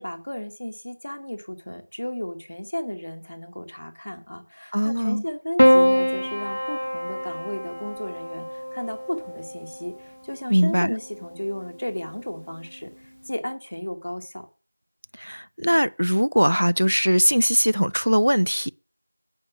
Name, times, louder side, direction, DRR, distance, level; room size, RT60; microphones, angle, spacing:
voice 1, 0.0-14.5, left 1 dB, 30° left, 0.9 m, -34 dB
voice 2, 4.7-5.2 10.5-10.9 15.2-18.7, equal, 75° right, 0.4 m, -21 dB
Piano, 5.6-10.1 11.3-11.9, equal, 70° left, 0.4 m, -23 dB
8.2 x 5.2 x 6.8 m
figure-of-eight pair, 180°, 0 cm